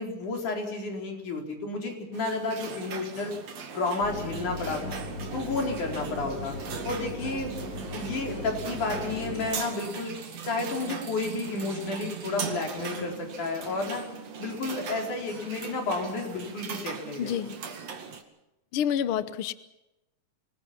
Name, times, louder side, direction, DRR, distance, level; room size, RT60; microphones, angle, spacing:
voice 1, 0.0-3.3 3.7-5.0 5.3-6.6 6.8-7.5 7.9-10.1 10.4-14.1 14.4-17.3, left 3 dB, 90° left, 2 dB, 5.8 m, -31 dB
sound 1, 2.1-18.2, right 6 dB, 60° right, 3.3 m, -39 dB
Mechanisms, 4.0-9.5, equal, 35° left, 6.5 m, -37 dB
voice 2, 17.2-17.6 18.7-19.5, left 9 dB, 60° left, 14 dB, 1.5 m, -28 dB
26.0 x 20.5 x 6.0 m, 0.92 s
omnidirectional pair, 3.4 m